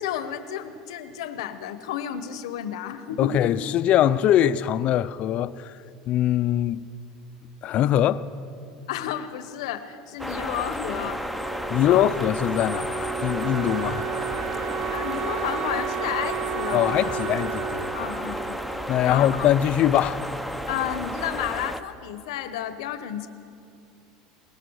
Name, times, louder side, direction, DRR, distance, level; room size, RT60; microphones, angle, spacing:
voice 1, 0.0-3.6 8.9-11.2 11.8-12.1 14.9-17.2 17.9-18.6 19.0-19.5 20.7-23.3, left 10 dB, 85° left, 1.0 m, -32 dB
voice 2, 3.2-5.7 6.1-6.8 7.6-8.3 11.7-14.1 16.7-18.1 18.9-20.2, left 11 dB, 45° left, 0.6 m, -22 dB
sound 1, 10.2-21.8, equal, 5° right, 0.9 m, -32 dB
Wind instrument woodwind instrument, 11.0-19.7, right 10 dB, 55° right, 0.6 m, -33 dB
21.0 x 19.0 x 6.4 m
supercardioid pair, 125°, 3 cm